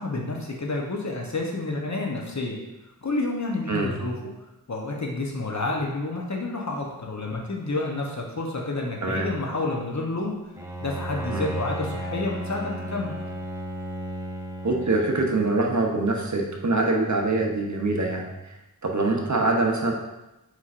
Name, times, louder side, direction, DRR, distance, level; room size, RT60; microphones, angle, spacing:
voice 1, 0.0-2.6 3.0-4.1 4.7-10.4 10.8-13.2, left 2 dB, 50° left, -1 dB, 0.9 m, -29 dB
voice 2, 9.0-9.3 11.3-11.5 14.6-18.5 18.8-19.9, right 2 dB, 50° right, 0 dB, 0.7 m, -24 dB
Bowed string instrument, 10.6-15.9, right 1 dB, 10° right, 0.5 m, -34 dB
4.4 x 4.3 x 2.5 m, 0.98 s
wide cardioid pair, 55°, 37 cm